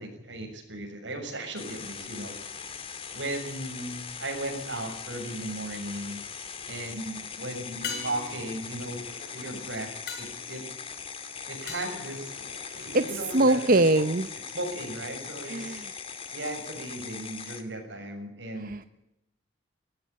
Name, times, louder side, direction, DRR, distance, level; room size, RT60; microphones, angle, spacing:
voice 1, 0.0-2.7 3.1-6.2 6.7-9.0 9.3-9.9 10.2-10.6 11.5-12.5 12.8-14.0 14.5-15.8 16.3-18.8, right 1 dB, 85° right, 4 dB, 6.7 m, -36 dB
sound 1, 1.6-17.6, left 6 dB, 30° left, 2.2 m, -40 dB
sound 2, 5.5-6.1 7.8-13.0 17.4-17.5, left 6 dB, 55° left, 5.4 m, -42 dB
sound 3, 9.0-10.0 11.6-14.5 15.6-15.7, left 2 dB, 75° left, 6.3 m, -50 dB
voice 2, 12.7-14.3 15.4-15.9 18.6-18.9, right 2 dB, 50° right, 10 dB, 0.8 m, -24 dB
18.0 x 17.0 x 8.8 m, 0.84 s
head